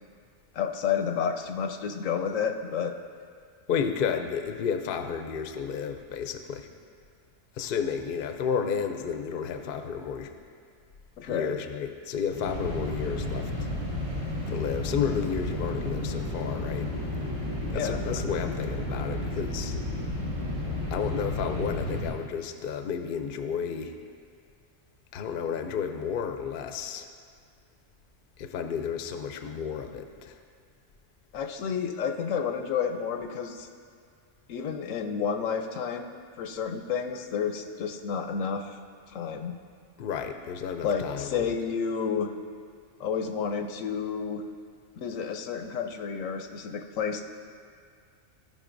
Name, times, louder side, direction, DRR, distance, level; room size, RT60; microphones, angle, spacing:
voice 1, 0.5-2.9 11.2-11.6 17.7-18.0 31.3-33.7 34.5-36.1 36.4-38.8 39.1-39.6 40.8-42.3 43.0-44.4 45.0-47.2, left 6 dB, 85° left, 6 dB, 1.0 m, -30 dB
voice 2, 3.7-6.7 7.6-10.3 11.3-13.7 14.5-17.1 17.7-19.8 20.9-23.9 25.1-27.1 28.4-30.4 40.0-41.5, left 7 dB, 55° left, 6 dB, 0.6 m, -32 dB
sound 1, 12.3-22.1, left 1 dB, 75° right, 2.9 m, -32 dB
15.5 x 5.3 x 2.6 m, 2.1 s
omnidirectional pair, 1.3 m